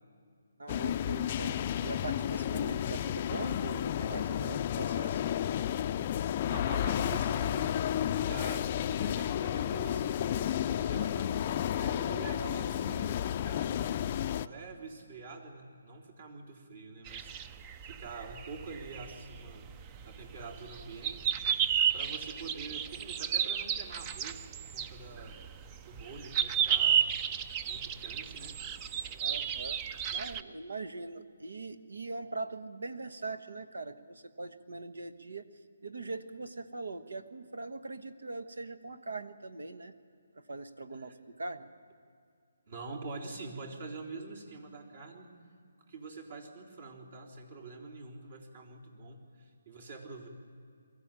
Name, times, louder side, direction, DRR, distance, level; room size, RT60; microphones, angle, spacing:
voice 1, 0.6-5.2 29.2-29.8 30.1-35.4 35.8-39.9 40.3-41.7, right 3 dB, 80° right, 10 dB, 1.3 m, -41 dB
sound 1, 0.7-14.5, left 10 dB, 35° left, 0.4 m, -32 dB
voice 2, 6.5-17.3 17.8-19.7 20.0-21.3 21.9-25.4 25.8-27.1 27.6-28.6 41.0-41.1 42.7-45.3 45.9-50.3, right 4 dB, 55° right, 0 dB, 3.6 m, -46 dB
sound 2, 17.1-30.4, right 8 dB, 20° right, 0.5 m, -33 dB
23.0 x 14.0 x 9.0 m, 2.2 s
hypercardioid pair, 155°, 0 cm